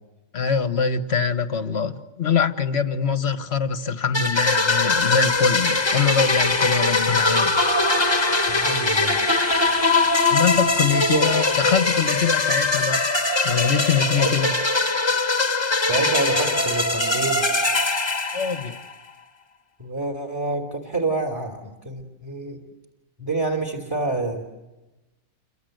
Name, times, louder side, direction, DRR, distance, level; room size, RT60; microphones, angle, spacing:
voice 1, 0.3-7.6 10.3-13.0 13.4-14.5 18.3-18.8, left 6 dB, 40° left, 10 dB, 1.5 m, -23 dB
sound 1, 4.1-18.9, left 3 dB, 15° left, 1.5 m, -21 dB
sound 2, 4.8-12.9, right 1 dB, 35° right, 4.8 m, -40 dB
voice 2, 8.5-9.2 11.1-11.3 14.1-14.3 15.8-17.5 19.8-22.6 23.2-24.5, right 2 dB, 10° right, 3 dB, 3.2 m, -27 dB
29.5 x 25.0 x 8.0 m, 1.0 s
omnidirectional pair, 1.9 m